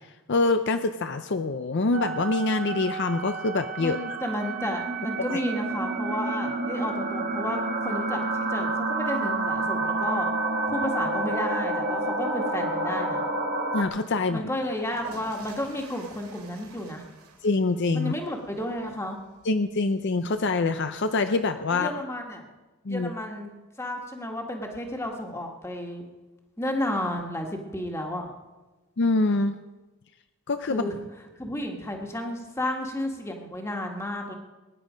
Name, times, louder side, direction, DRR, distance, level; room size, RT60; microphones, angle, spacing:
voice 1, 0.3-4.0 5.3-5.4 13.7-14.5 17.4-18.1 19.4-21.9 22.9-23.1 29.0-29.6 30.5-30.9, left 3 dB, 50° left, 9 dB, 0.6 m, -25 dB
sound 1, 1.9-13.8, right 2 dB, 45° right, 1.7 m, -29 dB
voice 2, 3.8-10.3 10.7-13.2 14.3-17.0 17.9-19.2 21.7-22.4 22.9-23.5 23.8-26.0 26.6-28.3 30.7-30.9 31.4-34.3, left 1 dB, 10° left, 2 dB, 1.7 m, -32 dB
sound 2, 14.7-21.5, right 3 dB, 70° right, 2.9 m, -50 dB
21.5 x 10.0 x 5.1 m, 1.2 s
head